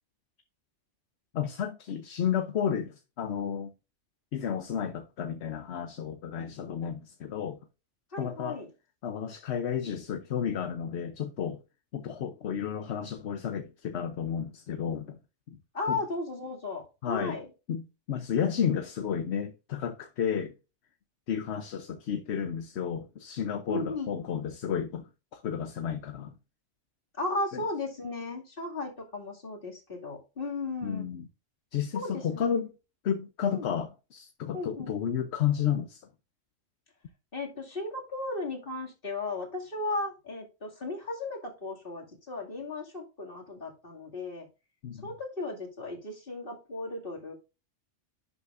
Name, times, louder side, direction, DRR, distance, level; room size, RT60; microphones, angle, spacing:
voice 1, 1.3-3.7 4.3-7.6 8.2-8.6 9.0-11.6 11.9-15.2 15.5-15.6 15.9-16.0 17.0-17.4 17.7-20.5 21.3-26.3 27.5-27.6 30.8-31.3 31.7-32.7 33.0-36.0 44.8-45.1, left 8 dB, 65° left, 1.0 m, -32 dB
voice 2, 8.1-8.7 15.7-17.5 23.7-24.1 27.1-31.1 31.9-32.5 33.5-33.7 34.5-34.9 37.3-44.5 45.0-47.3, left 2 dB, 45° left, 2.6 m, -35 dB
11.5 x 7.0 x 2.5 m
omnidirectional pair, 1.3 m